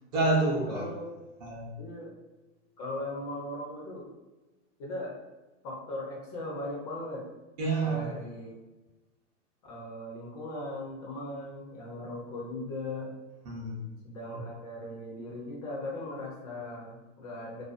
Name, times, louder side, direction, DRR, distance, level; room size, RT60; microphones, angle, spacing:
voice 1, 0.1-0.9 1.4-1.7 7.6-8.1 13.5-13.9, right 2 dB, 35° right, -3 dB, 0.5 m, -28 dB
voice 2, 0.7-1.0 1.8-2.1 2.8-4.1 4.8-5.1 5.6-7.2 7.8-8.5 9.6-13.1 14.0-17.6, left 1 dB, 30° left, -3 dB, 0.4 m, -38 dB
2.4 x 2.2 x 2.4 m, 1.1 s
supercardioid pair, 155°, 38 cm